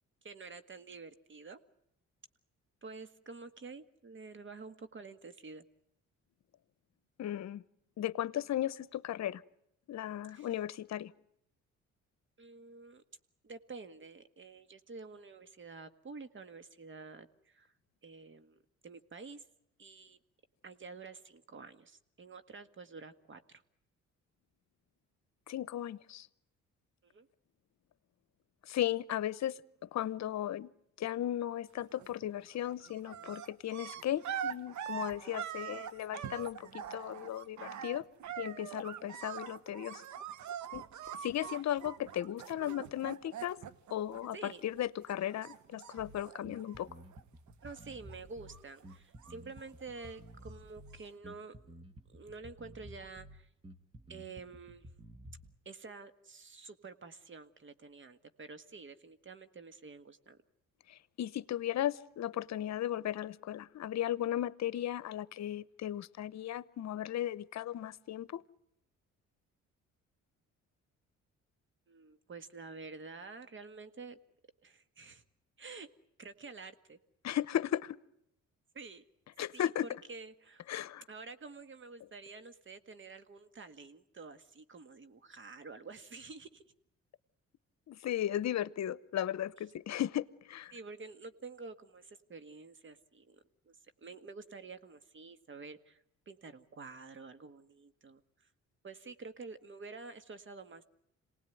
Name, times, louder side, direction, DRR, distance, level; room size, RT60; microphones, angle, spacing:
voice 1, 0.2-1.6 2.8-5.7 10.3-10.5 12.4-13.0 13.4-17.7 18.0-19.4 19.8-20.2 20.6-23.6 27.0-27.3 44.3-44.6 47.6-51.5 52.1-53.5 54.1-54.9 55.7-60.4 71.9-74.2 74.6-75.2 75.6-75.9 76.2-77.0 78.7-79.0 79.5-80.6 81.1-86.6 90.7-98.5 98.8-100.8, right 4 dB, 40° right, 11 dB, 1.8 m, -49 dB
voice 2, 7.2-7.6 8.0-9.4 9.9-11.1 25.5-26.3 28.6-30.7 31.0-38.1 38.4-40.0 40.7-40.9 41.2-43.6 43.9-46.9 60.9-68.4 77.2-78.0 79.4-79.9 80.7-81.0 87.9-90.7, left 12 dB, 60° left, 18 dB, 0.9 m, -36 dB
sound 1, 31.8-32.2 32.5-44.8 45.1-47.2 47.5-48.2 48.5-50.3 51.0-51.1, right 9 dB, 75° right, 1.3 m, -44 dB
Bass guitar, 46.0-55.6, right 1 dB, 20° right, 1.8 m, -53 dB
27.0 x 19.0 x 9.2 m, 0.79 s
cardioid pair, 90°, 30 cm